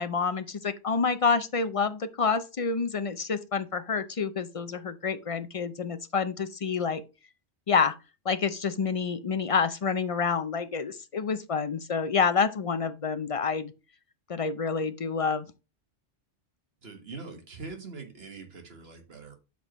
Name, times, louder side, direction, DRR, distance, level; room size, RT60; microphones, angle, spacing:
voice 1, 0.0-7.0 7.7-7.9 8.3-13.7 14.3-15.5, left 5 dB, 50° left, 0.4 m, -28 dB
voice 2, 16.8-19.4, right 4 dB, 55° right, 1.7 m, -43 dB
8.3 x 5.9 x 3.0 m
omnidirectional pair, 1.3 m